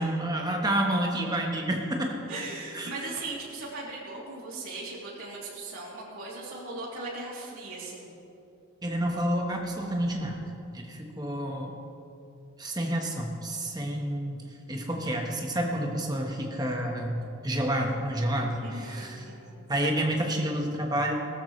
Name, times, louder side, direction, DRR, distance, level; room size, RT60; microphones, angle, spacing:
voice 1, 0.0-2.4 2.7-2.9 8.8-10.4 10.7-11.7 12.6-14.4 14.7-17.2 17.4-19.2 19.7-21.1, right 1 dB, 20° right, 1 dB, 1.3 m, -29 dB
voice 2, 2.3-8.1 18.6-19.6, right 2 dB, 80° right, -5 dB, 3.2 m, -38 dB
18.0 x 13.0 x 3.3 m, 2.7 s
head